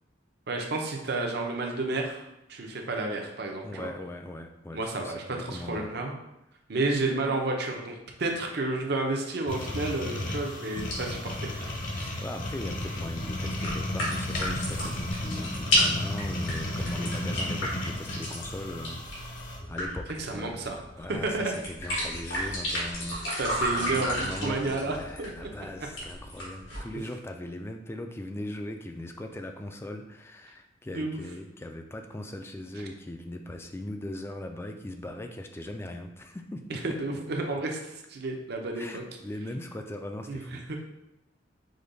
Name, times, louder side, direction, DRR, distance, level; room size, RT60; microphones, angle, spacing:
voice 1, 0.5-2.2 2.5-3.9 4.7-6.1 6.7-11.7 20.2-20.8 21.1-21.6 23.4-25.5 30.9-31.2 36.7-39.0 40.3-40.4 40.7-40.8, right 2 dB, 60° right, 2 dB, 0.7 m, -31 dB
voice 2, 3.6-5.9 11.9-37.2 38.7-40.8, left 1 dB, 15° left, 5 dB, 0.3 m, -39 dB
sound 1, 9.5-19.6, left 1 dB, 45° left, 0.8 m, -34 dB
sound 2, 10.7-26.8, equal, 85° left, 1.6 m, -33 dB
5.1 x 2.3 x 3.9 m, 0.87 s
head